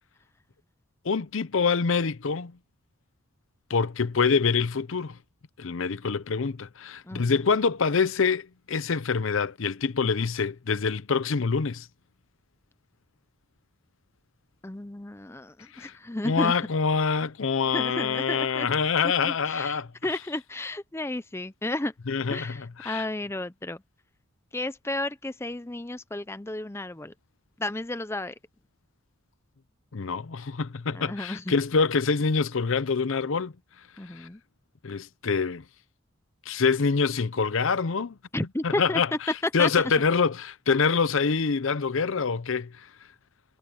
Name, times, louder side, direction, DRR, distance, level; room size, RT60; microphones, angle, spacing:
voice 1, 1.0-2.5 3.7-5.2 5.6-11.9 15.7-15.9 16.2-19.9 22.1-23.1 29.9-33.5 34.2-34.3 34.8-35.6 36.5-38.1 38.6-39.1 39.5-42.7, left 5 dB, 65° left, 0.6 m, -25 dB
voice 2, 7.1-7.4 14.6-16.6 17.7-18.7 19.2-21.9 22.3-23.8 24.5-27.1 27.6-28.3 30.9-31.5 34.0-34.4 38.3-39.0 39.6-39.7, left 1 dB, 10° left, 0.5 m, -32 dB
head